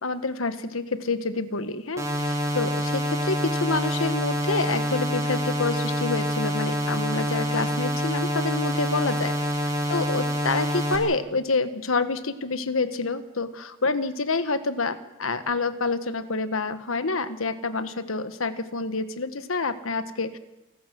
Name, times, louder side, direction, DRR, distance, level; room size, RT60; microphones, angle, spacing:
voice 1, 0.0-9.3 9.9-20.4, left 3 dB, 85° left, 12 dB, 1.4 m, -28 dB
sound 1, 2.0-11.0, equal, 15° right, 3.5 m, -26 dB
28.5 x 12.0 x 7.8 m, 0.97 s
head